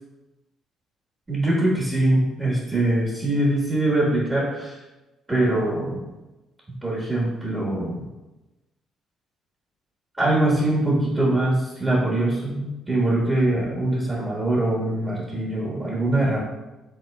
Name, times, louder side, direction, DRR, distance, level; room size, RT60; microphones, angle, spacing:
voice 1, 1.3-4.8 5.3-6.0 6.7-8.1 10.2-16.4, right 1 dB, 20° right, -5 dB, 1.5 m, -23 dB
5.6 x 3.7 x 2.3 m, 1.1 s
hypercardioid pair, 55°, 0 cm